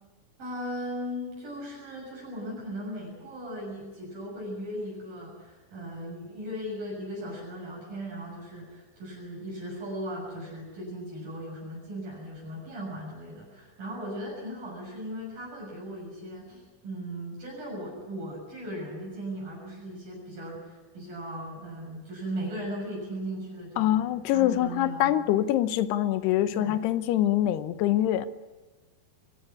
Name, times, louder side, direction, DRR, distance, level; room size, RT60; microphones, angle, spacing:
voice 1, 0.4-24.0 24.3-25.2 26.5-26.8, equal, 55° right, -4 dB, 8.4 m, -37 dB
voice 2, 23.8-28.3, left 13 dB, 75° left, 12 dB, 2.8 m, -24 dB
24.0 x 15.5 x 9.7 m, 1.3 s
omnidirectional pair, 5.0 m